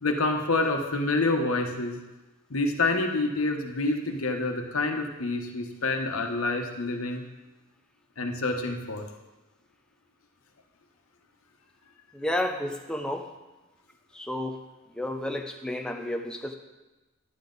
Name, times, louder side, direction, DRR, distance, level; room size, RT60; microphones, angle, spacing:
voice 1, 0.0-2.0 2.5-7.2 8.2-9.1, left 2 dB, 80° left, 3 dB, 1.2 m, -27 dB
voice 2, 12.1-13.3 14.1-14.6 15.0-16.5, left 1 dB, 5° left, 3 dB, 0.5 m, -31 dB
11.0 x 9.4 x 4.0 m, 1.1 s
head